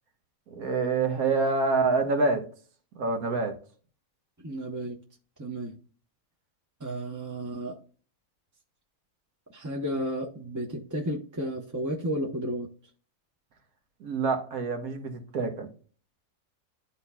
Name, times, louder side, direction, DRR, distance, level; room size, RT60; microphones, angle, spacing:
voice 1, 0.5-2.5 3.0-3.6 14.0-15.7, right 3 dB, 85° right, 1.6 m, -26 dB
voice 2, 4.4-5.0 5.4-5.7 6.8-7.8 9.5-12.7, right 1 dB, 20° right, 0.6 m, -32 dB
12.0 x 4.2 x 2.3 m
omnidirectional pair, 1.5 m